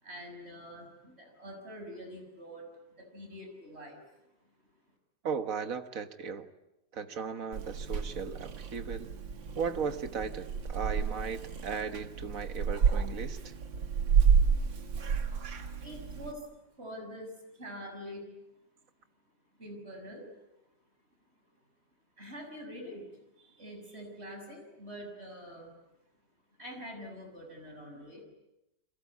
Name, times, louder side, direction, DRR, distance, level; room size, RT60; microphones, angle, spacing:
voice 1, 0.0-4.0 15.8-18.2 19.6-20.3 22.2-25.7 26.6-28.2, equal, 35° right, 4 dB, 6.8 m, -45 dB
voice 2, 5.2-6.5 6.9-9.1 9.6-13.5, right 6 dB, 50° right, 9 dB, 1.7 m, -36 dB
Purr / Meow, 7.5-16.3, right 6 dB, 90° right, 2.6 m, -30 dB
30.0 x 23.0 x 8.5 m, 0.91 s
omnidirectional pair, 2.0 m